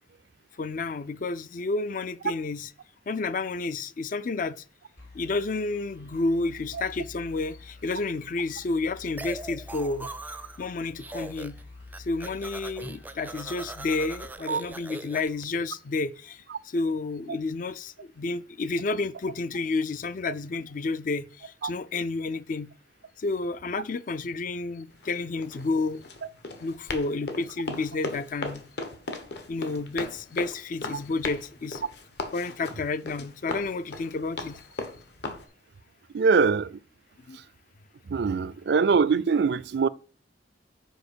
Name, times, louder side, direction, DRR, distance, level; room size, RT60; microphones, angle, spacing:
voice 1, 0.6-2.7 3.1-4.6 5.1-10.1 10.6-11.6 12.0-22.7 23.2-26.0 26.6-28.6 29.5-31.9 32.3-34.8 37.3-37.4, left 3 dB, 45° left, 0.4 m, -30 dB
sound 1, 5.0-15.3, left 3 dB, 80° left, 3.9 m, -49 dB
sound 2, 9.2-10.7 11.0-11.6 11.9-15.4, right 2 dB, 10° right, 0.4 m, -40 dB
Run, 24.9-35.4, left 2 dB, 65° left, 1.3 m, -38 dB
voice 2, 36.1-36.8 38.1-39.9, right 5 dB, 65° right, 0.4 m, -23 dB
6.4 x 5.1 x 6.8 m
head